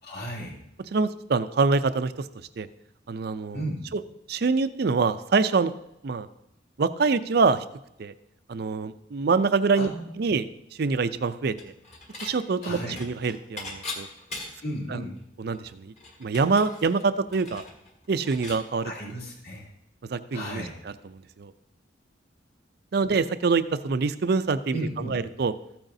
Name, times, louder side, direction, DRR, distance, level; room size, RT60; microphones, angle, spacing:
voice 1, 0.0-0.6 3.5-3.8 9.7-10.0 12.6-13.0 14.6-15.2 18.8-19.7 20.3-20.7 24.7-25.1, equal, 55° left, -4 dB, 2.8 m, -34 dB
voice 2, 0.9-2.3 2.6-2.7 3.1-3.6 3.9-4.0 4.3-5.7 6.0-6.3 6.8-7.6 8.0-8.1 8.5-9.9 10.2-10.5 10.8-11.7 12.2-14.1 14.9-15.0 15.4-15.9 16.2-17.6 18.1-18.9 20.1-20.6 21.1-21.5 22.9-25.5, right 4 dB, 55° right, 13 dB, 0.4 m, -25 dB
Dishes pots and pans / Chink clink, 11.6-12.3 12.6-14.7 15.2-15.3 15.5-18.6, left 3 dB, 35° left, 1.6 m, -40 dB
14.0 x 8.8 x 2.7 m, 0.83 s
head